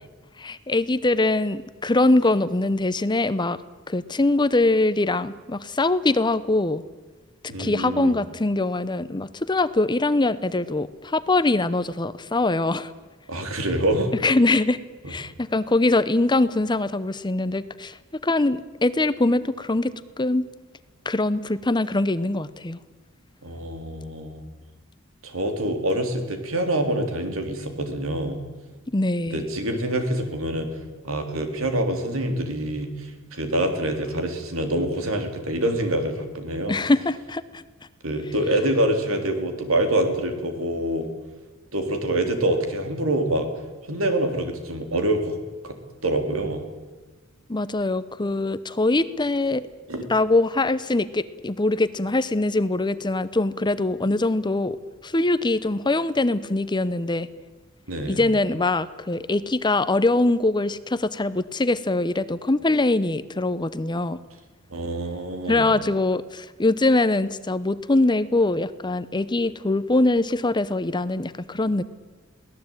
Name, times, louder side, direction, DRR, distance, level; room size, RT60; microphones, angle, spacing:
voice 1, 0.4-3.6 3.9-6.8 7.6-12.9 14.2-14.8 15.1-20.5 21.0-22.8 28.9-29.4 36.7-37.6 47.5-49.6 50.1-54.8 55.0-57.3 58.0-64.2 65.5-71.8, left 2 dB, 20° left, 15 dB, 0.8 m, -23 dB
voice 2, 7.5-8.2 13.3-14.1 15.0-15.1 23.4-24.4 25.2-28.4 29.3-30.7 31.0-36.8 38.0-41.1 41.7-43.5 43.8-45.4 45.6-45.7 46.0-46.6 49.9-50.0 57.9-58.2 64.7-65.7, right 1 dB, 75° right, 6 dB, 3.6 m, -25 dB
23.0 x 17.5 x 9.0 m, 1.3 s
head